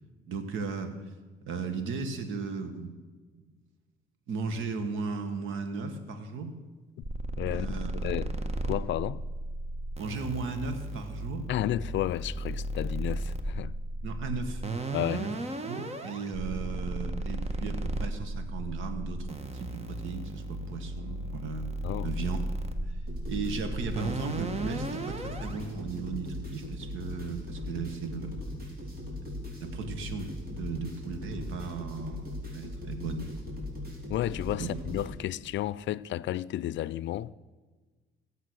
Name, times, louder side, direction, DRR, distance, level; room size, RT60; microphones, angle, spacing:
voice 1, 0.3-1.0 1.5-2.9 3.3-3.5 4.3-6.6 7.5-8.1 10.0-11.5 14.0-14.6 15.1-15.3 15.7-21.7 22.0-22.4 22.9-23.0 23.3-28.4 29.6-33.5 34.6-34.7, right 4 dB, 85° right, 1.6 m, -36 dB
sound 1, 7.0-25.6, right 1 dB, 30° right, 1.4 m, -35 dB
voice 2, 7.4-8.4 8.6-9.2 11.5-13.7 14.9-15.3 21.8-22.1 34.1-37.3, left 13 dB, 70° left, 0.4 m, -32 dB
sound 2, 23.1-35.1, left 1 dB, 50° right, 4.3 m, -39 dB
17.0 x 7.9 x 6.4 m
cardioid pair, 90°, 20 cm